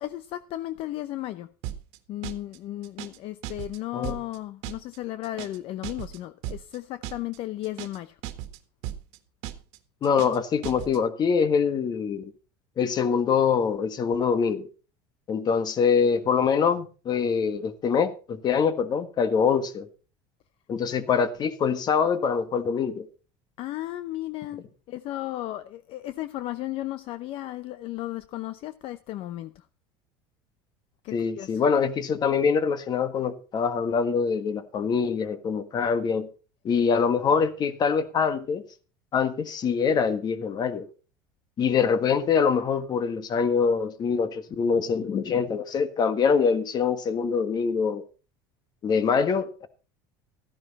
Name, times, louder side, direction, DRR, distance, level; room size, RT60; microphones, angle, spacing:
voice 1, 0.0-1.5 2.1-8.2 23.6-29.6 31.0-31.6, left 15 dB, 55° left, 0.7 m, -35 dB
sound 1, 1.6-2.0 2.2-2.6 2.8-3.2 3.4-3.8 4.0-4.4 4.6-5.0 5.2-5.6 5.8-6.2 6.4-6.8 7.0-7.4 7.6-8.6 8.8-9.2 9.4-9.8 10.0-10.4 10.6-11.0, right 12 dB, 70° right, 1.6 m, -36 dB
voice 2, 10.0-12.3 12.8-14.7 15.3-19.9 20.7-23.1 31.1-36.3 36.6-38.6 39.1-40.9 41.6-48.0 48.8-49.7, left 6 dB, 40° left, 1.6 m, -24 dB
14.5 x 10.5 x 4.2 m
supercardioid pair, 110°, 11 cm